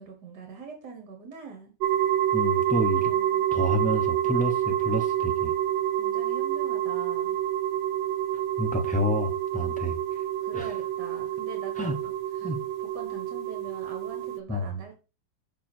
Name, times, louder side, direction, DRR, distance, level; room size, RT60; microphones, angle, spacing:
voice 1, 0.0-1.7 2.9-3.4 3.7-4.0 6.0-7.4 10.4-11.9 12.4-12.5 12.8-15.0, right 4 dB, 65° right, 4 dB, 2.0 m, -43 dB
sound 1, 1.8-14.4, right 12 dB, 90° right, 1.4 m, -28 dB
voice 2, 2.3-3.1 3.5-5.5 8.6-10.0 10.5-10.7 11.8-11.9 12.4-12.6 14.5-14.7, left 1 dB, 5° left, 3 dB, 0.6 m, -29 dB
6.7 x 5.2 x 4.4 m, 0.31 s
omnidirectional pair, 2.0 m